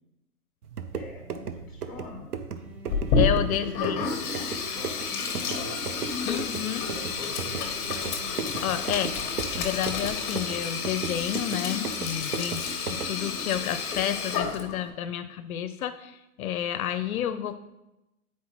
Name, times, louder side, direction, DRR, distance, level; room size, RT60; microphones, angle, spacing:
sound 1, 0.6-13.2, right 6 dB, 90° right, 0.7 m, -37 dB
voice 1, 0.9-2.3 3.6-6.0 6.8-8.2, left 3 dB, ahead, -1 dB, 1.1 m, -44 dB
Bowed string instrument, 2.6-5.8 6.8-9.7, left 1 dB, 70° right, 1.4 m, -48 dB
Sink (filling or washing), 2.9-14.9, left 5 dB, 25° left, 1.0 m, -30 dB
voice 2, 3.1-4.1 6.2-6.8 8.6-9.1 9.6-12.6 12.9-17.6, left 10 dB, 70° left, 10 dB, 0.5 m, -30 dB
8.3 x 4.4 x 3.0 m, 0.94 s
hypercardioid pair, 130°, 45 cm